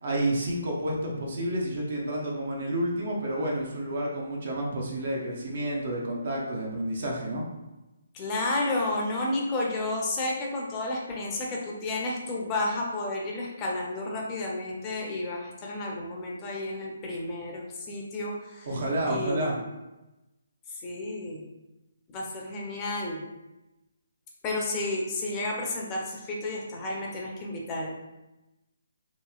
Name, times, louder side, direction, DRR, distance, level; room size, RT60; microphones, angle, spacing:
voice 1, 0.0-7.5 18.6-19.6, right 1 dB, 55° right, -2 dB, 0.7 m, -30 dB
voice 2, 8.1-18.7 19.1-19.5 20.8-21.4 22.1-23.2 24.4-28.0, left 2 dB, 25° left, -2 dB, 0.6 m, -31 dB
2.9 x 2.7 x 2.3 m, 0.99 s
figure-of-eight pair, 145°, 0 cm